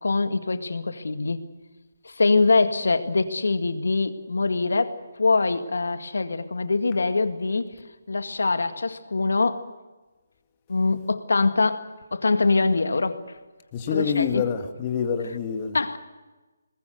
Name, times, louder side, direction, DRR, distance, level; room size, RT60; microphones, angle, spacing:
voice 1, 0.0-1.4 2.0-7.7 8.1-9.7 10.7-13.2 13.9-14.5 15.7-16.0, left 3 dB, 75° left, 1.9 m, -23 dB
voice 2, 13.7-15.8, left 7 dB, 25° left, 2.0 m, -26 dB
22.0 x 20.0 x 7.9 m
figure-of-eight pair, 150°, 0 cm